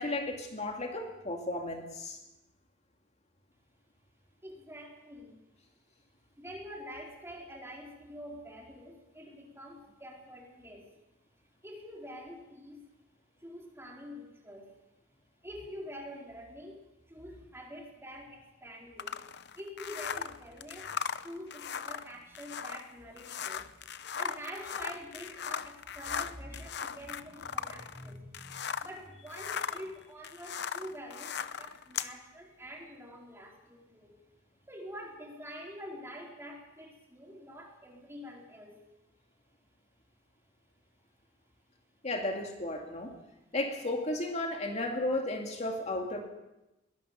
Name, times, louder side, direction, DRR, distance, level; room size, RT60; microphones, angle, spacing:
voice 1, 0.0-2.2 42.0-43.1 43.5-46.2, left 2 dB, 35° left, 3 dB, 2.4 m, -34 dB
voice 2, 4.4-5.4 6.4-10.9 11.6-12.9 13.4-14.7 15.4-19.2 19.5-23.7 24.2-34.2 34.7-38.8 43.4-43.5, equal, 15° right, -1 dB, 4.4 m, -46 dB
sound 1, 19.0-29.0 29.3-32.1, left 7 dB, 65° left, 0.8 m, -38 dB
22.0 x 18.5 x 6.9 m, 0.95 s
head